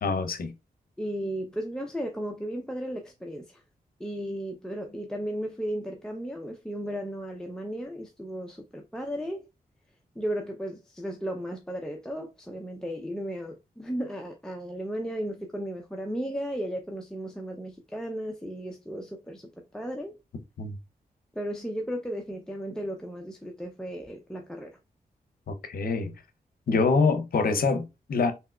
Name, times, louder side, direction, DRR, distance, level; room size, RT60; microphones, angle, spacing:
voice 1, 0.0-0.5 20.6-20.8 25.5-26.1 26.7-28.3, left 4 dB, 65° left, 0.6 m, -25 dB
voice 2, 1.0-3.6 4.0-9.4 10.2-20.1 21.4-24.8, equal, 5° left, 0.5 m, -35 dB
3.4 x 2.8 x 2.2 m
cardioid pair, 60°, 16 cm